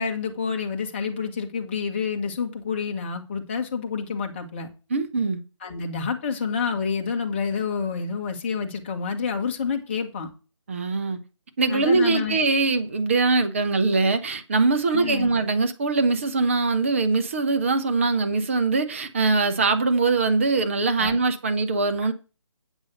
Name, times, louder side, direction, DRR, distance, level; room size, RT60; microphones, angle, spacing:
voice 1, 0.0-4.7 5.6-10.3 11.7-12.4 14.9-15.3 21.0-21.2, left 5 dB, 25° left, 1.3 m, -28 dB
voice 2, 4.9-5.4 10.7-11.2 11.6-22.1, right 3 dB, 25° right, 0.8 m, -22 dB
8.1 x 5.4 x 7.8 m
figure-of-eight pair, 155°, 16 cm